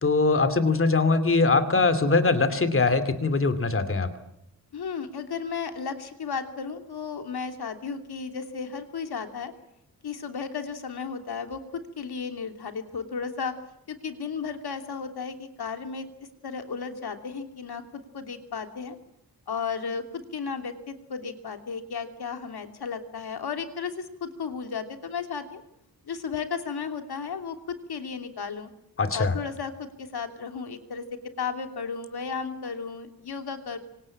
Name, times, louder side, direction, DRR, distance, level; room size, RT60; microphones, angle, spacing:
voice 1, 0.0-4.1 29.0-29.3, left 3 dB, 35° left, 10 dB, 2.6 m, -22 dB
voice 2, 4.7-9.5 10.0-13.5 13.9-16.1 16.4-19.0 19.5-25.6 26.0-28.7 29.1-31.0 31.4-33.8, left 5 dB, 75° left, 6 dB, 3.0 m, -34 dB
26.5 x 25.5 x 8.8 m, 0.80 s
wide cardioid pair, 175°, 39 cm